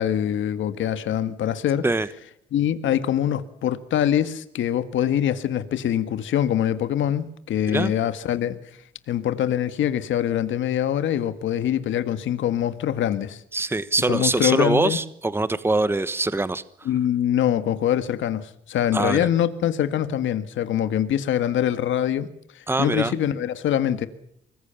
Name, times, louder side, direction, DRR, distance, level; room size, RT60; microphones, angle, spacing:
voice 1, 0.0-1.8 2.5-8.6 9.1-13.4 14.0-15.0 16.9-22.3 22.5-24.1, left 10 dB, 75° left, 11 dB, 1.8 m, -24 dB
voice 2, 13.5-16.6 18.9-19.3 22.7-23.1, right 2 dB, 10° right, 15 dB, 1.2 m, -23 dB
24.5 x 21.0 x 7.1 m, 0.72 s
cardioid pair, 90°, 20 cm